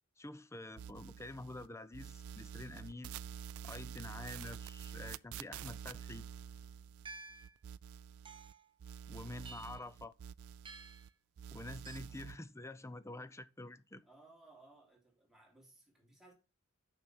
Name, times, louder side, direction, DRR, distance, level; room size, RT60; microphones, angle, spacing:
voice 1, 0.2-3.1 3.6-6.3 9.1-10.1 11.5-14.0, left 2 dB, 15° left, 0.6 m, -48 dB
sound 1, 0.8-1.7 1.9-8.5 8.8-11.1 11.4-12.4, right 8 dB, 85° right, 0.4 m, -48 dB
sound 2, 7.1-7.6 8.3-8.7 9.5-9.9 10.7-11.1 11.9-12.0, right 4 dB, 25° right, 0.9 m, -51 dB
voice 2, 9.1-9.9 12.1-12.2 14.0-16.3, right 2 dB, ahead, 3.1 m, -63 dB
6.7 x 6.0 x 6.3 m
head